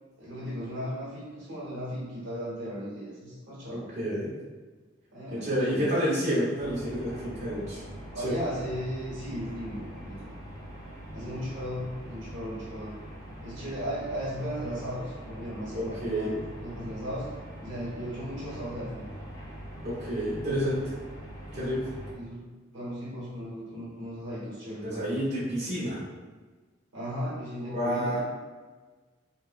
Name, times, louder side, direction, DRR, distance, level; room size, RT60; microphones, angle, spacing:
voice 1, 0.2-3.9 5.1-5.9 8.1-10.3 11.1-13.0 13.4-17.3 17.6-19.0 22.1-25.2 26.9-28.2, equal, 75° right, -8 dB, 1.1 m, -36 dB
voice 2, 3.7-4.3 5.3-7.8 8.2-8.3 11.2-11.4 15.7-16.4 19.8-20.8 21.5-21.9 24.8-26.0 27.6-28.2, equal, 35° right, -9 dB, 1.0 m, -29 dB
sound 1, 6.6-22.1, equal, 20° left, 0.6 m, -43 dB
3.3 x 2.1 x 2.4 m, 1.3 s
head